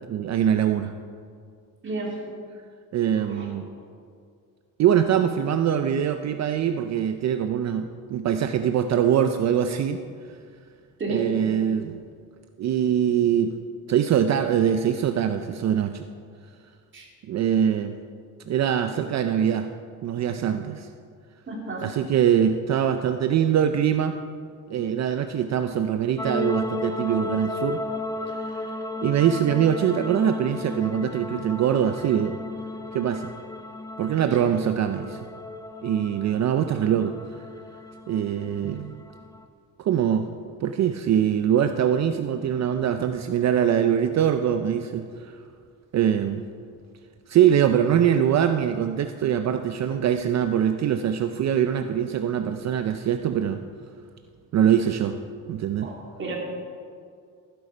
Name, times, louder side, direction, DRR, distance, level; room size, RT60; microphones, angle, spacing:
voice 1, 0.1-0.9 2.9-3.7 4.8-10.0 11.1-12.0 12.6-13.6 13.9-16.1 17.2-18.0 18.5-19.7 20.0-20.9 21.8-24.2 24.7-27.8 28.3-28.7 29.0-32.4 32.9-33.3 34.0-35.2 35.8-37.1 38.1-39.0 39.8-40.3 40.6-45.4 45.9-46.5 47.3-53.6 54.5-55.2 55.5-55.9, right 9 dB, 50° right, 8 dB, 0.5 m, -23 dB
voice 2, 1.8-2.2 3.2-3.5 11.0-11.3 16.9-17.1 21.5-21.9 55.8-56.4, right 2 dB, 35° right, -2 dB, 2.6 m, -32 dB
sound 1, 26.2-39.4, left 3 dB, 10° left, 0.5 m, -34 dB
14.5 x 8.2 x 5.0 m, 2.2 s
cardioid pair, 140°, 35 cm